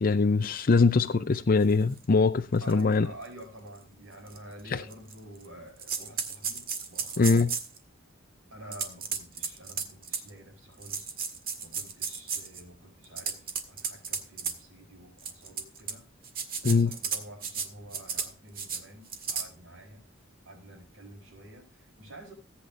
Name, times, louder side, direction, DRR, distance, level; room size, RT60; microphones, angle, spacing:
voice 1, 0.0-3.1 4.7-4.8 7.2-7.5 16.6-16.9, left 4 dB, 45° left, 0.5 m, -22 dB
sound 1, 2.0-2.1 2.7-2.8 3.3-3.4 4.3-4.4 4.9-5.5 5.8-7.8 8.7-10.3 10.8-12.6 13.0-14.5 15.2-15.9 16.2-17.7 17.9-18.3 18.6-18.8 19.1-19.5, right 6 dB, 50° right, 1.8 m, -33 dB
voice 2, 2.6-7.4 8.5-11.1 11.6-16.1 16.6-20.0 20.4-22.3, right 1 dB, 75° right, 6.4 m, -49 dB
18.0 x 8.7 x 2.5 m
head